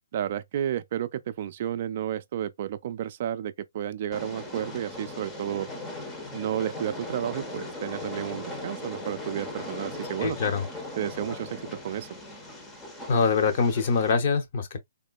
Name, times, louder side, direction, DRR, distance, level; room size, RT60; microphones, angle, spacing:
voice 1, 0.1-5.7 6.3-10.4 11.0-12.2, right 10 dB, 45° right, 0.3 m, -32 dB
Train, 4.1-14.1, left 2 dB, 10° left, 0.7 m, -38 dB
voice 2, 10.2-10.6 13.1-14.8, left 5 dB, 45° left, 0.8 m, -24 dB
3.6 x 2.2 x 2.3 m
hypercardioid pair, 150°, 0 cm